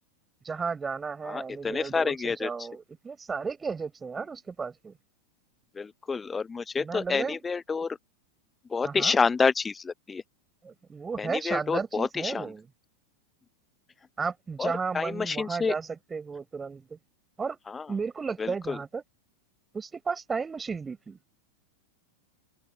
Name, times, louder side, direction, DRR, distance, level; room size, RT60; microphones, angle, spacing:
voice 1, 0.4-5.0 6.8-7.4 8.8-9.2 10.6-12.7 14.2-17.0 17.4-17.6 17.9-19.0 19.7-21.2, right 5 dB, 15° right, 6.3 m, -34 dB
voice 2, 1.2-2.5 5.7-8.0 8.7-10.2 11.2-12.5 14.6-15.7 17.7-17.8 18.4-18.8, left 5 dB, 15° left, 0.9 m, -28 dB
figure-of-eight pair, 90°, 0 cm